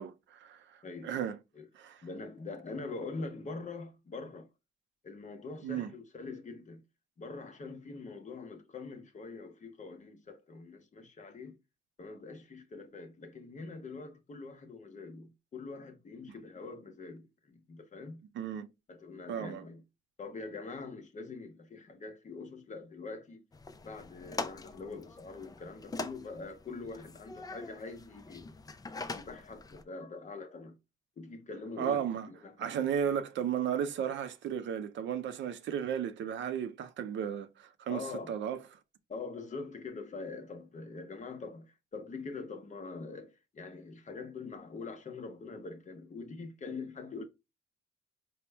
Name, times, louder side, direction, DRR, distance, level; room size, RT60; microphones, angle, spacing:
voice 1, 0.0-0.6 1.0-1.4 1.7-2.0 5.6-5.9 18.4-18.7 19.3-19.6 31.8-32.3 32.6-38.6, right 8 dB, 70° right, 0.5 m, -34 dB
voice 2, 0.8-1.2 1.5-1.7 2.0-4.5 5.0-6.8 7.2-11.6 12.0-18.2 18.9-19.8 20.2-23.4 23.8-28.5 28.9-30.8 31.2-32.9 37.9-38.4 39.1-47.2, left 3 dB, 40° left, 0.8 m, -44 dB
sound 1, 23.5-29.8, left 3 dB, 20° left, 0.4 m, -43 dB
4.4 x 2.1 x 3.2 m
cardioid pair, 90°, 20 cm